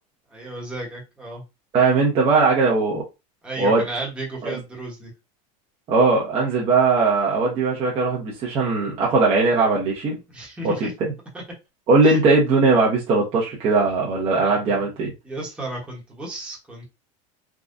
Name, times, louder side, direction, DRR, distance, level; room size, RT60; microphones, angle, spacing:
voice 1, 0.3-1.4 3.4-5.1 10.3-10.9 12.0-12.2 15.2-16.9, right 2 dB, 5° right, 1.1 m, -33 dB
voice 2, 1.7-3.0 3.6-3.8 4.4-4.6 5.9-10.2 10.6-10.9 11.9-15.1, right 3 dB, 35° right, 0.9 m, -19 dB
3.6 x 2.3 x 2.6 m
supercardioid pair, 155°, 17 cm